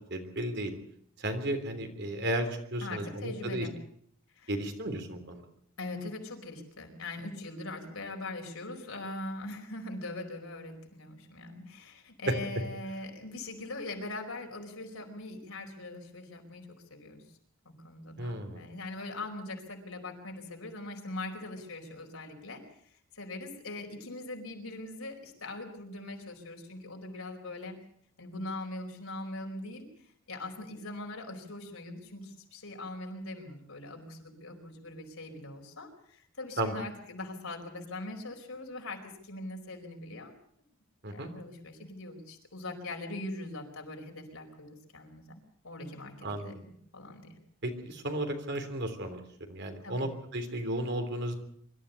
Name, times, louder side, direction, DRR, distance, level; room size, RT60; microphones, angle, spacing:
voice 1, 0.1-0.7 1.2-3.7 4.5-5.4 18.2-18.6 36.6-36.8 41.0-41.3 46.2-46.6 47.6-51.3, right 1 dB, 55° right, 6 dB, 3.4 m, -34 dB
voice 2, 2.8-3.7 4.3-4.5 5.8-17.2 17.6-27.8 28.2-40.3 41.1-45.2 45.6-46.5 46.9-47.4 49.8-50.1, left 2 dB, 85° left, 2 dB, 4.8 m, -41 dB
24.5 x 13.5 x 8.3 m, 0.66 s
head